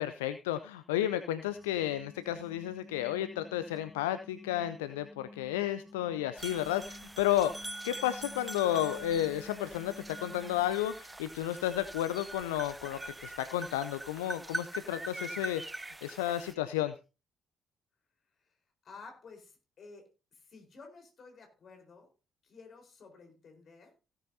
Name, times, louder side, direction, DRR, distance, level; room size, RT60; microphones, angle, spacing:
voice 1, 0.0-15.6 16.0-16.9, left 12 dB, 75° left, 12 dB, 0.4 m, -32 dB
sound 1, 1.4-11.1, left 2 dB, 60° right, 4.6 m, -52 dB
sound 2, 6.4-16.5, right 2 dB, 15° right, 0.7 m, -43 dB
voice 2, 18.8-22.1 22.4-23.9, left 4 dB, 50° left, 4 dB, 4.3 m, -53 dB
16.5 x 9.3 x 2.7 m, 0.32 s
figure-of-eight pair, 45°, 0 cm